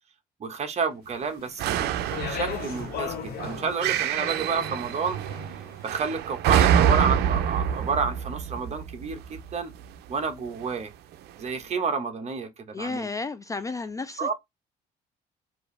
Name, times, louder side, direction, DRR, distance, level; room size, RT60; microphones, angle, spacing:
voice 1, 0.4-2.0 2.3-5.2 5.8-9.7 10.1-10.9 11.4-13.1 14.2-14.3, right 5 dB, 40° right, 1.1 m, -30 dB
Speech, 1.4-5.7, left 9 dB, 65° left, 0.8 m, -37 dB
sound 1, 1.6-9.8 10.6-10.7, right 9 dB, 75° right, 0.5 m, -26 dB
voice 2, 12.7-14.3, left 3 dB, 20° left, 0.3 m, -32 dB
4.4 x 2.7 x 3.2 m
cardioid pair, 110°, 17 cm